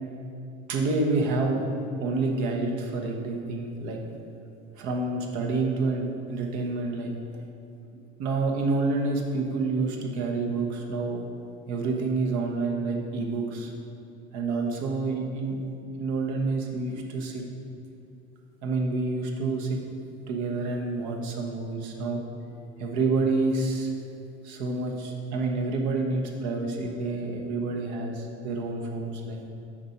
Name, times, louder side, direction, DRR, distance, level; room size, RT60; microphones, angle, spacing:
voice 1, 0.7-1.6 2.0-4.0 4.8-7.1 8.2-11.2 11.7-13.7 14.3-15.6 16.0-17.4 18.6-19.8 20.3-22.2 22.8-23.9 24.4-29.4, right 3 dB, 60° right, 1 dB, 1.3 m, -28 dB
6.5 x 4.8 x 5.8 m, 2.7 s
hypercardioid pair, 70°, 33 cm